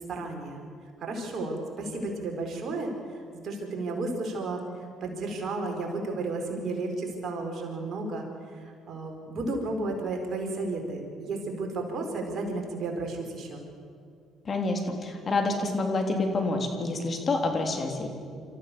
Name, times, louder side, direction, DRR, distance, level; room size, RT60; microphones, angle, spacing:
voice 1, 0.1-0.6 1.0-2.9 3.3-4.6 5.0-8.2 8.6-13.6, right 2 dB, 55° right, 2 dB, 4.8 m, -33 dB
voice 2, 14.5-18.1, left 2 dB, 40° left, 3 dB, 3.5 m, -28 dB
27.0 x 14.0 x 7.2 m, 2.3 s
hypercardioid pair, 55°, 0 cm